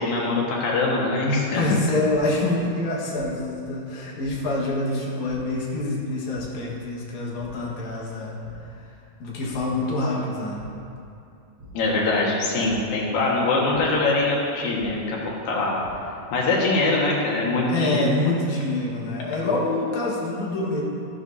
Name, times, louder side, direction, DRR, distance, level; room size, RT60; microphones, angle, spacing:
voice 1, 0.0-1.6 11.7-15.7 16.3-18.2, left 2 dB, 90° left, -4 dB, 3.4 m, -23 dB
voice 2, 1.6-8.4 9.2-10.6 17.7-20.8, left 2 dB, 60° left, -4 dB, 2.8 m, -26 dB
sound 1, 2.1-2.2 3.1-3.3 4.2-4.3 5.2-5.3 6.3-6.4 7.4-7.5 7.9-8.1 8.4-8.5 9.5-9.6 10.5-10.6 11.6-11.7 12.6-12.7 13.7-13.8 14.8-14.9 15.5-15.9, equal, 40° right, 3.5 m, -46 dB
13.5 x 9.9 x 2.8 m, 2.6 s
omnidirectional pair, 3.9 m